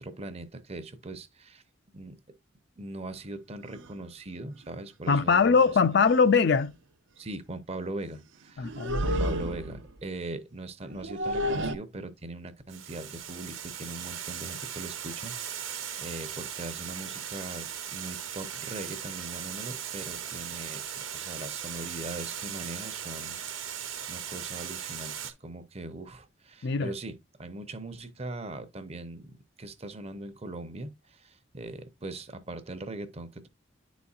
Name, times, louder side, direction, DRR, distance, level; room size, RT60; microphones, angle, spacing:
voice 1, 0.0-1.6 1.9-2.1 2.8-5.6 7.2-8.7 9.0-20.8 21.1-23.8 24.1-29.3 29.6-30.9 31.2-33.5, right 2 dB, 30° right, 0.7 m, -40 dB
sound 1, 3.7-3.9 5.1-5.2 5.6-5.7 6.1-6.3 8.6-9.9 10.8-11.8, equal, 65° right, 0.7 m, -31 dB
voice 2, 5.1-6.7 8.6-9.2 26.6-26.9, left 5 dB, 55° left, 0.4 m, -22 dB
Water, 12.7-25.3, right 9 dB, 80° right, 1.1 m, -38 dB
10.0 x 4.2 x 2.4 m
head